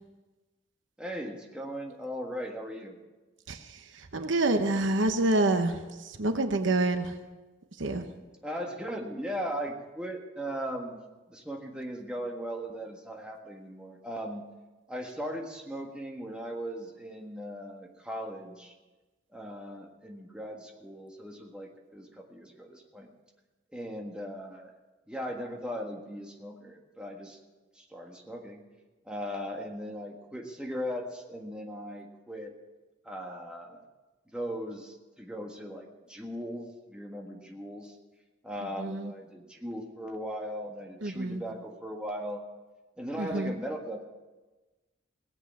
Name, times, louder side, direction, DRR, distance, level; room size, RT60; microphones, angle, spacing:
voice 1, 1.0-3.0 8.4-11.0 11.3-14.4 14.9-18.7 19.3-23.1 23.7-24.7 25.1-27.4 27.7-28.6 29.1-32.5 33.0-33.8 34.3-37.9 38.4-42.4 43.0-44.0, equal, 5° right, 0 dB, 1.6 m, -38 dB
voice 2, 3.5-7.1 7.8-8.0 38.8-39.1 41.0-41.4 43.2-43.5, right 2 dB, 75° right, 7 dB, 1.0 m, -28 dB
18.0 x 8.1 x 7.1 m, 1.2 s
head